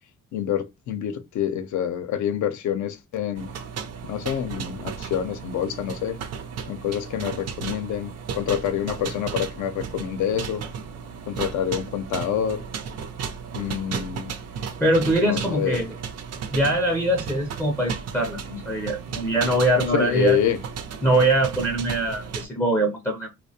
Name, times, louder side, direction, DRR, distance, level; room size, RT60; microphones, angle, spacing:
voice 1, 0.3-3.5 4.1-6.2 6.7-10.6 11.3-12.6 13.5-14.4 15.2-15.9 19.9-20.6, left 9 dB, 75° left, 0.5 m, -27 dB
sound 1, 3.4-22.5, right 6 dB, 55° right, 0.5 m, -35 dB
voice 2, 14.8-15.9 16.5-20.4 21.0-23.3, right 1 dB, 10° left, 0.4 m, -22 dB
2.4 x 2.0 x 2.6 m
cardioid pair, 90°, 30 cm